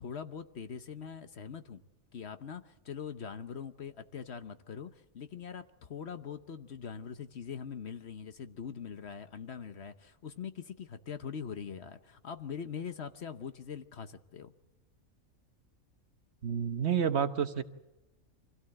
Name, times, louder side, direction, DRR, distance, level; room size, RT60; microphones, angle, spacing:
voice 1, 0.0-1.8 2.1-14.5, left 7 dB, 55° left, 10 dB, 1.1 m, -42 dB
voice 2, 16.4-17.6, right 8 dB, 55° right, 10 dB, 1.2 m, -29 dB
25.0 x 16.5 x 7.8 m, 1.0 s
omnidirectional pair, 1.4 m